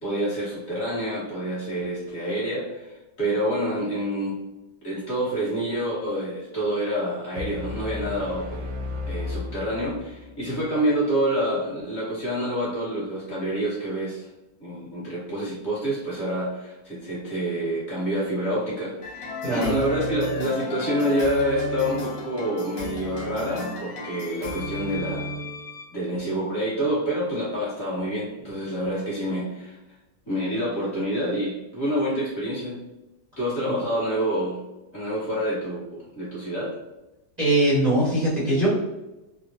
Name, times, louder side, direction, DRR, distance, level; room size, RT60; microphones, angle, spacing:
voice 1, 0.0-4.4 4.8-8.7 9.1-14.3 14.6-25.3 25.9-30.0 30.3-32.8 33.4-34.6 34.9-36.7, equal, 40° left, -9 dB, 1.4 m, -27 dB
sound 1, 7.4-10.4, left 2 dB, 85° right, 1.3 m, -34 dB
sound 2, 19.0-25.9, left 1 dB, 85° left, 1.6 m, -33 dB
voice 2, 37.4-38.7, right 1 dB, 55° right, -8 dB, 0.4 m, -21 dB
3.6 x 2.0 x 2.6 m, 1.0 s
omnidirectional pair, 1.9 m